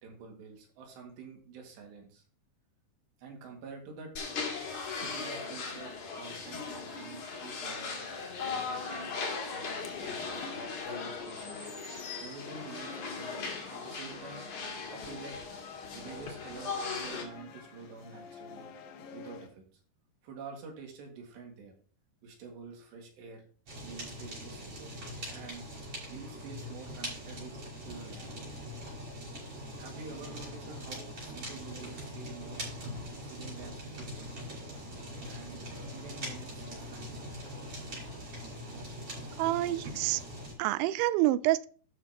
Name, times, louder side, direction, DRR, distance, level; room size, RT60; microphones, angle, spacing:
voice 1, 0.0-2.2 3.2-4.1 4.9-8.0 8.4-11.6 12.2-14.5 14.9-15.4 15.9-18.7 19.1-19.6 20.2-21.7 22.2-23.4 23.8-25.0 25.3-25.7 26.1-27.5 27.8-28.3 29.8-32.6 33.2-34.3 35.3-35.6 35.9-37.3, right 5 dB, 70° right, 4.2 m, -48 dB
sound 1, 4.2-17.2, left 4 dB, 50° left, 3.0 m, -38 dB
sound 2, 9.8-19.5, left 6 dB, 70° left, 2.4 m, -48 dB
Fire, 23.7-40.5, equal, 35° right, 5.5 m, -42 dB
voice 2, 39.4-40.2 40.6-41.7, right 16 dB, 85° right, 2.9 m, -28 dB
12.0 x 8.1 x 3.0 m
omnidirectional pair, 5.2 m